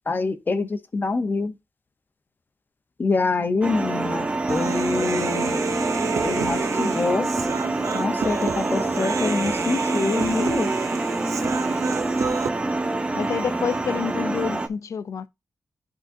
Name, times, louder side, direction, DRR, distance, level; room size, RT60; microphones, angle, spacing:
voice 1, 0.1-1.5 3.0-5.6 6.2-7.3 7.9-10.7, left 3 dB, 35° left, 0.8 m, -25 dB
sound 1, 3.6-14.7, right 2 dB, 15° right, 0.5 m, -26 dB
Human voice, 4.5-12.5, right 6 dB, 65° right, 0.6 m, -30 dB
voice 2, 13.1-15.3, left 6 dB, 60° left, 0.6 m, -28 dB
10.5 x 3.9 x 2.6 m
wide cardioid pair, 150°, 6 cm